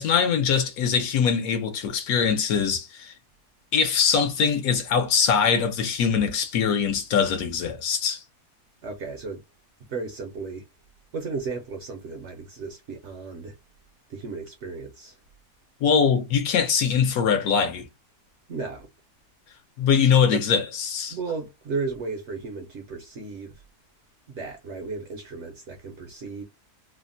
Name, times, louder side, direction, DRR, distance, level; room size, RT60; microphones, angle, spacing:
voice 1, 0.0-3.1 3.7-8.2 15.8-17.9 19.8-21.2, left 6 dB, 75° left, 1.0 m, -22 dB
voice 2, 8.8-9.4 9.9-10.7 11.1-13.6 14.1-15.2 18.5-18.9 20.3-20.4 21.1-23.6 24.3-26.4, right 4 dB, 65° right, 0.7 m, -34 dB
3.3 x 2.1 x 2.5 m
omnidirectional pair, 1.7 m